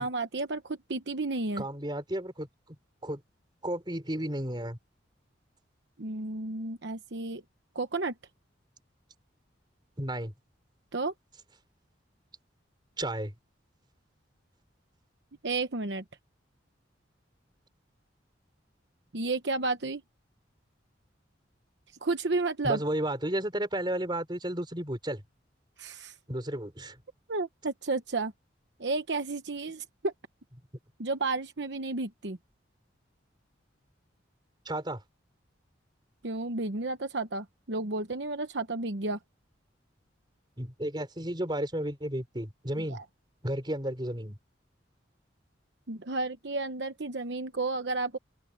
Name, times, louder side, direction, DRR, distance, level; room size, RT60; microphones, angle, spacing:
voice 1, 0.0-1.6 6.0-7.4 7.7-8.1 10.9-11.1 15.4-16.0 19.1-20.0 22.0-22.8 25.8-26.1 27.3-28.3 28.8-30.1 31.0-32.4 36.2-39.2 42.9-43.0 45.9-48.2, right 3 dB, 65° right, 1.0 m, -32 dB
voice 2, 1.6-2.8 3.0-3.2 3.6-4.8 10.0-10.3 13.0-13.3 22.6-25.2 26.3-27.0 34.6-35.0 40.6-43.0 43.4-44.4, right 1 dB, 25° right, 4.6 m, -33 dB
open air
head